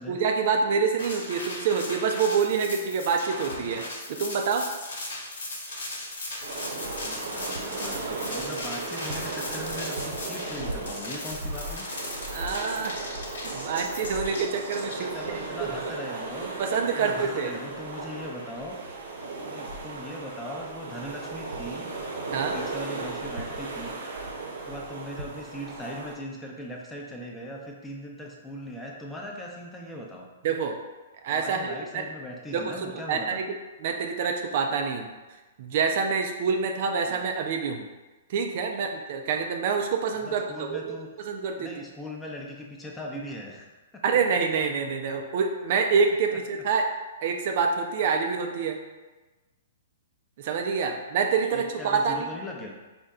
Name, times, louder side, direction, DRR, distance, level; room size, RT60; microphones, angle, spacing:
voice 1, 0.1-3.8 4.1-4.7 12.3-13.0 13.4-15.7 16.4-17.5 22.3-22.5 30.4-30.8 31.2-32.0 32.5-33.6 33.8-35.1 35.6-37.9 38.3-41.7 44.0-46.9 47.2-48.8 50.4-52.3, right 5 dB, 55° right, 3 dB, 0.4 m, -27 dB
sound 1, 1.0-15.4, left 2 dB, 70° left, 1.0 m, -37 dB
sound 2, 6.4-26.1, right 3 dB, 70° right, 0.8 m, -36 dB
voice 2, 6.8-11.8 15.0-16.5 17.0-18.8 19.5-21.9 22.3-24.0 24.5-30.3 31.3-33.5 35.0-35.2 37.1-37.3 40.1-41.1 41.6-44.2 46.3-46.4 50.9-51.1 51.5-52.8, left 1 dB, 10° left, -1 dB, 0.6 m, -40 dB
4.2 x 2.1 x 3.5 m, 1.2 s
hypercardioid pair, 120°, 0 cm